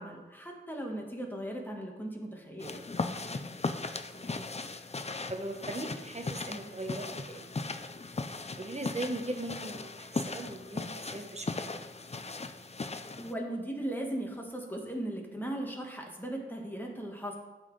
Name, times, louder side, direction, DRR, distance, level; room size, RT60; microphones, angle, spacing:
voice 1, 0.0-2.8 13.1-17.4, right 1 dB, 10° left, 0 dB, 1.3 m, -38 dB
sound 1, 2.6-13.3, left 3 dB, 30° left, 0.4 m, -38 dB
voice 2, 4.1-4.5 5.3-7.5 8.6-11.9, right 1 dB, 35° right, 3 dB, 0.9 m, -39 dB
11.5 x 4.1 x 3.2 m, 1.1 s
wide cardioid pair, 50°, 20 cm